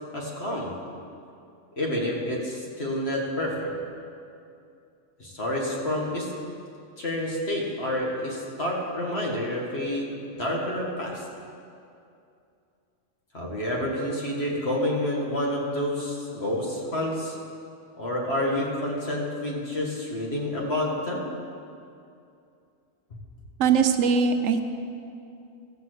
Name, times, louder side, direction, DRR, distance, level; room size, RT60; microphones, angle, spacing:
voice 1, 0.1-0.7 1.8-3.7 5.2-6.3 7.0-10.1 10.3-11.2 13.3-17.4 18.0-21.2, left 1 dB, 55° left, -2 dB, 2.0 m, -28 dB
voice 2, 23.6-24.6, right 6 dB, 85° right, 8 dB, 1.1 m, -21 dB
13.5 x 5.7 x 7.9 m, 2.5 s
omnidirectional pair, 1.3 m